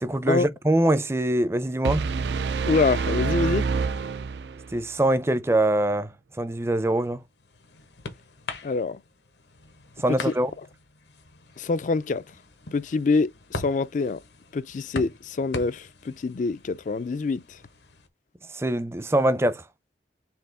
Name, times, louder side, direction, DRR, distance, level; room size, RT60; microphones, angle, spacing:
voice 1, 0.0-2.1 4.7-6.1 6.4-7.2 10.0-10.5 18.5-19.6, right 1 dB, 15° right, 0.5 m, -23 dB
sound 1, 1.8-4.8, right 5 dB, 80° right, 0.4 m, -27 dB
voice 2, 2.6-3.7 8.6-9.0 10.1-10.3 11.6-12.2 12.7-14.2 14.5-17.6, left 4 dB, 45° left, 0.3 m, -25 dB
sound 2, 7.0-18.1, left 3 dB, 80° left, 1.1 m, -42 dB
4.5 x 3.5 x 3.3 m
head